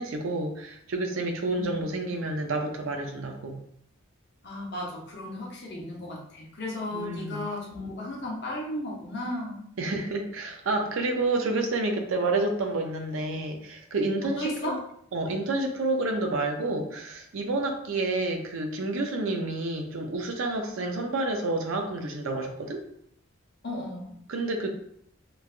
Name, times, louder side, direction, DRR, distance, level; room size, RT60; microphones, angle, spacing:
voice 1, 0.0-3.6 6.9-7.4 9.8-14.8 15.1-22.8 24.3-24.7, right 2 dB, 70° right, 3 dB, 0.5 m, -29 dB
voice 2, 1.5-1.8 4.4-9.7 14.4-14.8 23.6-24.1, left 1 dB, 50° left, -2 dB, 0.7 m, -34 dB
3.2 x 2.2 x 2.4 m, 0.68 s
head